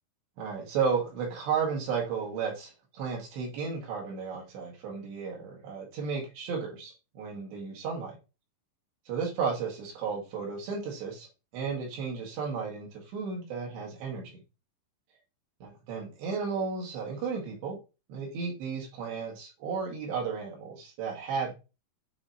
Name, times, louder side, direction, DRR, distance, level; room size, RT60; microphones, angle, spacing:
voice 1, 0.4-8.2 9.1-11.3 11.5-14.4 15.6-17.8 18.1-21.5, right 5 dB, 90° right, 4.1 m, -33 dB
8.4 x 2.9 x 3.9 m
omnidirectional pair, 4.8 m